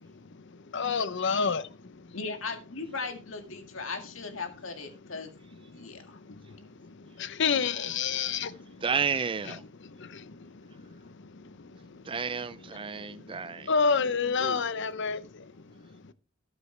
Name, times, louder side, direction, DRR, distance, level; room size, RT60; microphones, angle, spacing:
voice 1, 0.7-1.7 7.2-8.6 9.4-10.5 13.6-15.4, left 5 dB, 65° left, 0.8 m, -28 dB
voice 2, 2.1-5.3 5.8-6.2, left 4 dB, 80° left, 2.0 m, -37 dB
voice 3, 8.8-9.6 12.1-13.6 14.4-14.6, right 6 dB, 25° right, 0.5 m, -31 dB
13.0 x 9.7 x 3.3 m
head